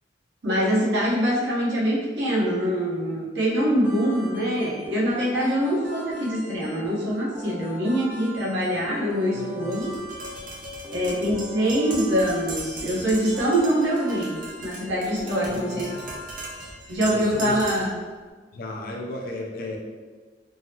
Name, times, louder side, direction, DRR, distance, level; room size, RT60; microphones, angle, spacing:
voice 1, 0.4-9.9 10.9-15.9 16.9-17.9, equal, 80° right, -6 dB, 1.0 m, -24 dB
sound 1, 3.8-16.7, left 1 dB, 10° right, 0.6 m, -41 dB
voice 2, 9.3-9.8 15.5-16.1 16.9-17.6 18.5-19.8, left 2 dB, 55° left, 1 dB, 0.5 m, -34 dB
Tap, 9.7-18.0, right 2 dB, 50° right, 0.7 m, -39 dB
3.7 x 2.0 x 2.8 m, 1.4 s
head